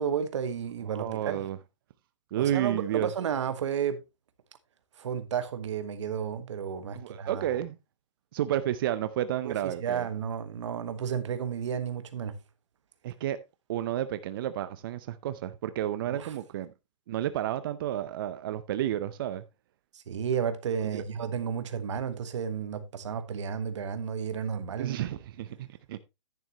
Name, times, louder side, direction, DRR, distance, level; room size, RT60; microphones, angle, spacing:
voice 1, 0.0-1.5 2.4-4.0 5.0-7.4 9.4-12.4 16.1-16.3 19.9-25.0, right 7 dB, 70° right, 1.4 m, -32 dB
voice 2, 0.9-1.6 2.3-3.1 6.9-7.8 8.3-10.1 13.0-13.4 13.7-16.7 17.1-19.4 20.9-21.0 24.8-26.0, right 12 dB, 45° right, 0.6 m, -31 dB
10.5 x 9.3 x 2.9 m
hypercardioid pair, 160°, 16 cm